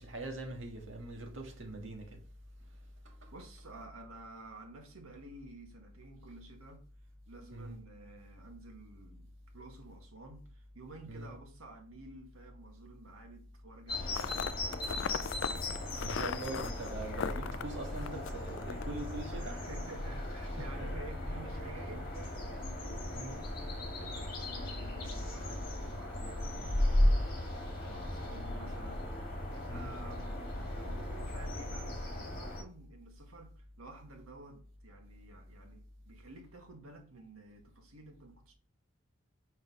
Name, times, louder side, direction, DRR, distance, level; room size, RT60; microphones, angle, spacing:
voice 1, 0.0-2.2 3.0-3.3 7.5-7.8 11.1-11.3 16.0-19.6 23.1-23.4 29.7-29.9, right 2 dB, 65° right, 1.7 m, -42 dB
voice 2, 3.3-6.8 7.3-14.9 19.3-38.5, right 2 dB, 90° right, 1.8 m, -52 dB
sound 1, 13.9-32.6, left 1 dB, 45° left, 2.0 m, -36 dB
sound 2, 14.1-19.5, left 7 dB, 60° left, 0.3 m, -40 dB
5.7 x 5.5 x 5.4 m
head